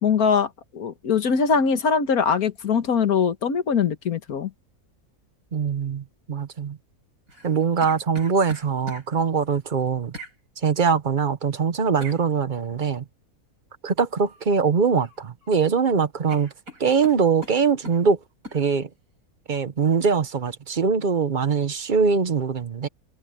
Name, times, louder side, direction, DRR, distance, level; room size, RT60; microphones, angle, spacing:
voice 1, 0.0-4.5, left 6 dB, 70° left, 1.9 m, -22 dB
voice 2, 5.5-6.8 7.4-10.1 10.6-13.0 13.8-16.5 16.8-18.2 18.5-18.9 19.5-22.9, right 5 dB, 40° right, 0.9 m, -22 dB
sound 1, 7.3-9.1 10.1-10.4 12.0-12.2 14.2-14.5 14.8-15.5 15.8-15.9 16.3-18.0 18.4-18.6, right 1 dB, 65° right, 8.3 m, -41 dB
omnidirectional pair, 1.6 m